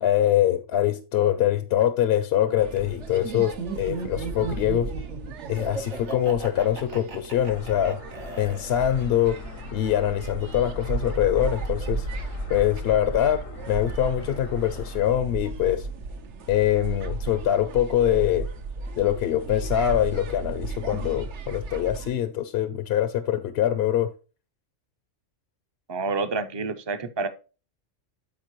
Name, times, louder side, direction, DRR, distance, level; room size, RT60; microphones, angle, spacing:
voice 1, 0.0-4.9 5.5-8.0 8.4-9.4 9.7-12.1 12.5-15.9 16.5-18.5 19.0-24.1, left 11 dB, 60° left, 0.8 m, -24 dB
sound 1, 2.6-22.1, right 3 dB, 65° right, 1.1 m, -35 dB
Laughter, 3.2-9.2, right 5 dB, 90° right, 1.9 m, -35 dB
sound 2, 7.4-15.1, left 4 dB, 85° left, 1.5 m, -41 dB
voice 2, 25.9-27.3, right 4 dB, 30° right, 0.5 m, -28 dB
12.5 x 4.6 x 3.1 m
omnidirectional pair, 1.3 m